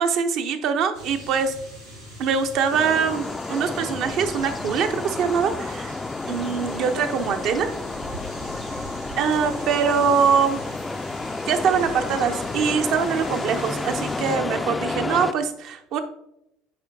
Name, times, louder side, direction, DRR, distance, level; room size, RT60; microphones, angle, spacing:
voice 1, 0.0-1.5 2.2-6.0 6.3-7.7 9.2-10.6 11.5-16.0, right 6 dB, 50° right, 8 dB, 0.6 m, -23 dB
sound 1, 0.9-14.4, right 1 dB, 85° right, 2.4 m, -41 dB
sound 2, 2.7-15.3, left 3 dB, 15° left, 0.3 m, -31 dB
9.3 x 4.3 x 2.8 m, 0.81 s
figure-of-eight pair, 65°, 0 cm